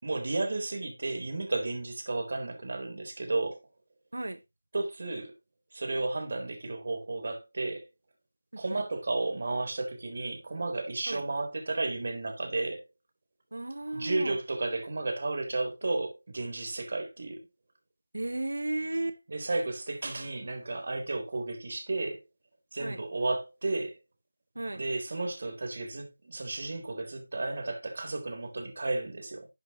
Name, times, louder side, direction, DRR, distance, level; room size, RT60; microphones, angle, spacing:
voice 1, 0.0-3.6 4.7-5.3 5.7-7.9 8.6-12.8 13.9-17.4 19.3-22.2 22.7-24.0 24.8-29.5, right 2 dB, 50° right, 3.8 m, -33 dB
voice 2, 8.5-8.8 11.1-11.2 13.5-14.4 18.1-19.2 22.8-23.0 24.5-24.8, right 2 dB, 70° right, 1.1 m, -34 dB
12.5 x 8.1 x 3.0 m
figure-of-eight pair, 165°, 0 cm